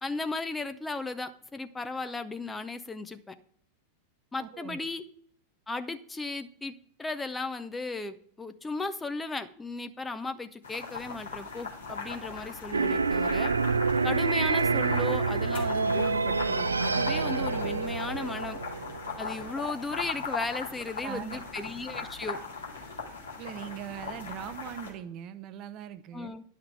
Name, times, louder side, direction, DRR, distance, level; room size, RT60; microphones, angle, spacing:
voice 1, 0.0-3.4 4.3-5.0 5.7-13.5 14.0-18.6 19.2-22.4 26.1-26.4, left 3 dB, 10° left, 10 dB, 0.5 m, -36 dB
voice 2, 4.4-4.9 21.0-21.4 23.4-26.3, right 10 dB, 40° right, 12 dB, 0.7 m, -40 dB
sound 1, 10.6-24.9, left 5 dB, 70° left, 2.2 m, -39 dB
sound 2, 12.7-19.5, right 4 dB, 75° right, 0.4 m, -27 dB
10.5 x 5.8 x 4.6 m, 0.63 s
figure-of-eight pair, 90°, 0 cm